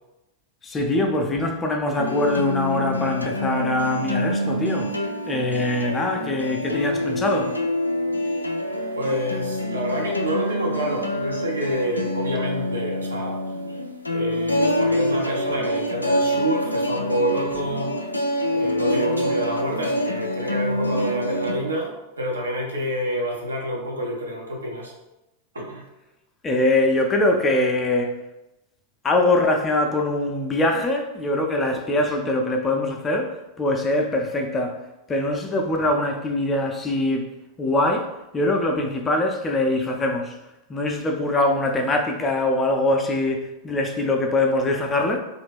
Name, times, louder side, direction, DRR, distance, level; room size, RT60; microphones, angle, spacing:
voice 1, 0.6-5.0 5.3-7.6 26.4-28.1 29.0-34.8 35.1-37.3 37.6-40.3 40.7-45.2, left 2 dB, 20° left, 0.4 m, -23 dB
sound 1, 2.0-21.6, left 1 dB, 85° left, 0.3 m, -26 dB
voice 2, 8.9-13.4 14.1-18.0 18.5-24.9 25.5-25.8, equal, 75° right, 0.7 m, -28 dB
2.8 x 2.5 x 3.4 m
figure-of-eight pair, 90°, 0 cm